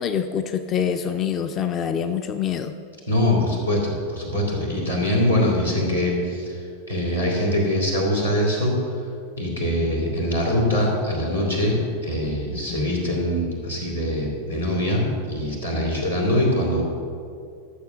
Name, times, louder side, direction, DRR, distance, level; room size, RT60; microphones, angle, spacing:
voice 1, 0.0-2.7 12.5-12.9 15.7-16.0, left 8 dB, 30° left, 8 dB, 0.5 m, -26 dB
voice 2, 3.1-6.6 6.9-8.8 9.4-16.8, left 1 dB, 90° left, -4 dB, 3.1 m, -23 dB
13.0 x 7.1 x 6.1 m, 2.4 s
figure-of-eight pair, 90°, 0 cm